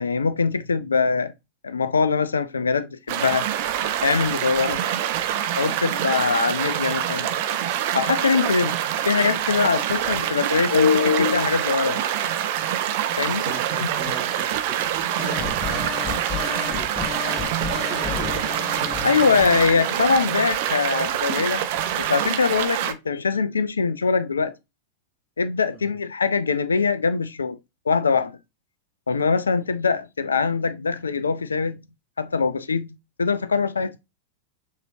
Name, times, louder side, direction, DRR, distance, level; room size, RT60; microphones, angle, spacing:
voice 1, 0.0-1.3 1.6-3.5 4.0-4.8 5.6-7.3 7.9-8.7 9.1-12.0 13.2-13.4 19.0-21.6 22.0-24.5 25.4-27.6 27.9-28.4 29.1-31.8 32.2-33.9, left 5 dB, 75° left, 0.5 m, -22 dB
sound 1, 3.1-22.9, right 10 dB, 50° right, 0.6 m, -26 dB
voice 2, 13.2-17.3 17.5-18.4 25.7-26.0, right 5 dB, 25° right, 1.4 m, -40 dB
sound 2, 15.2-20.1, left 6 dB, 20° left, 1.4 m, -32 dB
6.6 x 3.0 x 2.6 m
figure-of-eight pair, 90°, 0 cm